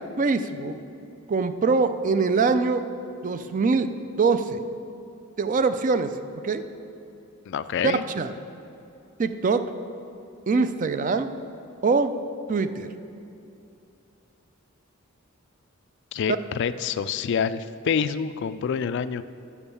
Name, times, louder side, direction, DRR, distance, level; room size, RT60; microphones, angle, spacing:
voice 1, 0.2-0.8 1.3-2.8 3.2-3.9 4.2-4.6 5.4-6.1 6.4-6.6 7.8-8.3 9.2-9.6 10.5-11.3 11.8-12.1 12.5-12.9, right 4 dB, 40° right, 11 dB, 0.4 m, -23 dB
voice 2, 7.5-8.0 16.1-19.2, left 7 dB, 55° left, 13 dB, 0.3 m, -27 dB
7.2 x 7.0 x 6.8 m, 2.7 s
head